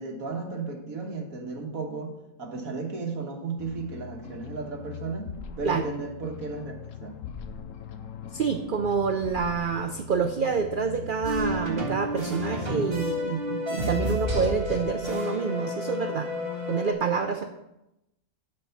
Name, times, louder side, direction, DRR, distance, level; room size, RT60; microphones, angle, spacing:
voice 1, 0.0-7.2, right 4 dB, 75° right, 2 dB, 1.8 m, -34 dB
sound 1, 3.6-13.2, left 6 dB, 70° left, 1.1 m, -41 dB
voice 2, 8.3-16.3 16.7-17.5, right 6 dB, 60° right, 6 dB, 0.5 m, -27 dB
sound 2, 11.2-16.9, left 1 dB, 40° right, 1.9 m, -30 dB
11.5 x 4.4 x 5.7 m, 0.89 s
omnidirectional pair, 1.5 m